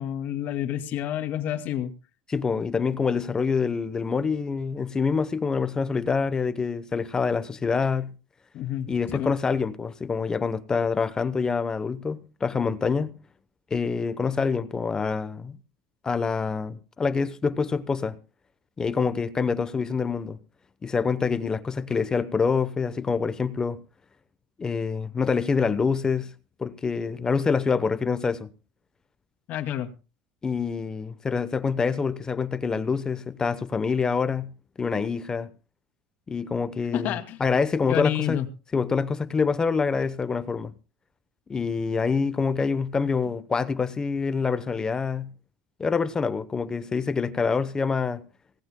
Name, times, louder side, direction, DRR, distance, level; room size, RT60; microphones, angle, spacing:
voice 1, 0.0-1.9 8.5-9.3 29.5-29.9 36.9-37.4 37.9-38.5, left 11 dB, 50° left, 2.2 m, -29 dB
voice 2, 2.3-8.1 8.9-13.1 13.7-15.6 16.0-18.2 18.8-20.4 20.8-23.8 24.6-26.3 26.6-28.5 30.4-34.5 34.8-35.5 36.3-38.4 38.7-40.7 41.5-45.3 45.8-48.2, left 5 dB, 20° left, 0.8 m, -26 dB
24.5 x 18.5 x 2.2 m
cardioid pair, 145°, 4 cm